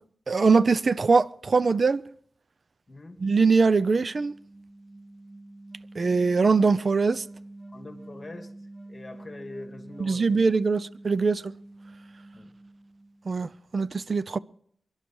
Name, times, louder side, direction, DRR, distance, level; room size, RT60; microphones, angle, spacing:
voice 1, 0.3-2.0 3.2-4.3 6.0-7.2 10.0-11.5 13.3-14.4, right 4 dB, 55° right, 0.6 m, -22 dB
voice 2, 2.9-3.2 7.7-8.5 8.9-10.4 12.3-12.5, left 2 dB, 35° left, 2.5 m, -43 dB
sound 1, 3.4-13.5, right 2 dB, 25° right, 5.2 m, -47 dB
23.5 x 11.5 x 4.7 m
cardioid pair, 60°, 0 cm